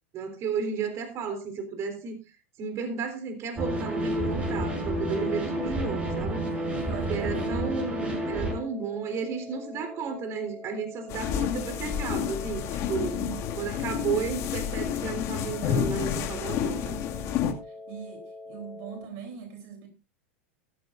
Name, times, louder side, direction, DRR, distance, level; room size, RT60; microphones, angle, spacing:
voice 1, 0.1-2.1 2.6-6.5 7.1-13.2 13.6-17.0, right 5 dB, 40° right, 3.8 m, -33 dB
sound 1, 3.6-8.6, right 1 dB, 20° right, 6.4 m, -30 dB
voice 2, 6.6-7.5 13.0-13.5 17.9-19.9, right 7 dB, 55° right, 3.6 m, -41 dB
sound 2, 7.0-19.0, left 2 dB, 5° left, 2.9 m, -44 dB
sound 3, 11.1-17.5, left 9 dB, 45° left, 2.2 m, -30 dB
15.0 x 14.5 x 2.6 m
hypercardioid pair, 100°, 7 cm